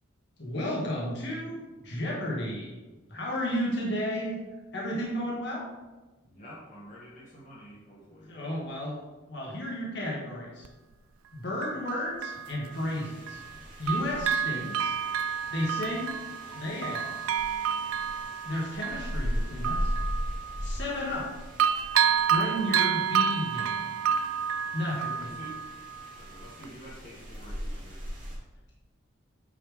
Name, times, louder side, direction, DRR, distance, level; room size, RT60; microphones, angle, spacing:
voice 1, 0.4-2.7 3.1-4.4 4.7-5.6 8.3-9.0 9.3-10.7 11.3-13.4 13.8-14.9 15.5-16.2 16.5-17.0 18.4-19.9 20.6-21.3 22.3-23.9 24.7-25.3, left 1 dB, 55° left, -4 dB, 1.8 m, -33 dB
voice 2, 6.3-8.4 25.2-25.6 26.2-28.0, equal, 40° left, -6 dB, 1.8 m, -48 dB
Bell, 10.6-10.7 11.6-13.6 13.9-21.3 21.6-26.2 26.6-26.7, right 8 dB, 85° right, 0.4 m, -30 dB
sound 1, 12.7-28.4, equal, 40° right, 2.1 m, -38 dB
8.9 x 5.7 x 3.6 m, 1.2 s
head